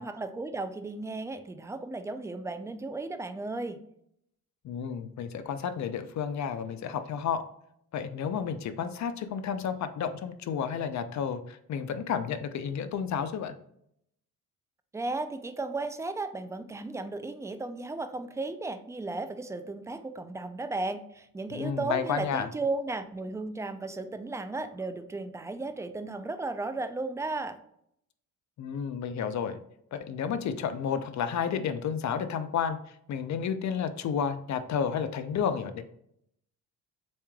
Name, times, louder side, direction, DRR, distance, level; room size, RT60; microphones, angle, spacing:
voice 1, 0.0-3.8 14.9-27.6, right 3 dB, 10° right, 9 dB, 0.3 m, -35 dB
voice 2, 4.6-7.4 7.9-13.5 21.5-22.5 28.6-29.6 29.9-35.8, left 7 dB, 50° left, 10 dB, 0.5 m, -31 dB
7.1 x 3.1 x 2.2 m, 0.72 s
cardioid pair, 130°, 36 cm